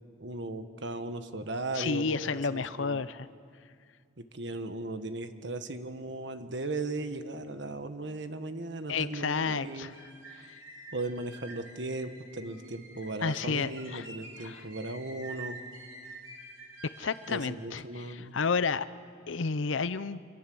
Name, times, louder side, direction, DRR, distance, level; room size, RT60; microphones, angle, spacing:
voice 1, 0.2-3.1 4.2-9.9 10.9-15.6 17.3-18.4, right 2 dB, 65° right, 9 dB, 1.4 m, -37 dB
voice 2, 1.7-3.3 8.9-9.9 10.3-10.5 13.2-14.1 14.4-14.6 17.0-18.9 19.3-20.2, left 5 dB, 80° left, 15 dB, 0.7 m, -31 dB
sound 1, 9.6-17.5, right 2 dB, 85° right, 4.0 m, -48 dB
28.0 x 26.0 x 7.8 m, 2.2 s
head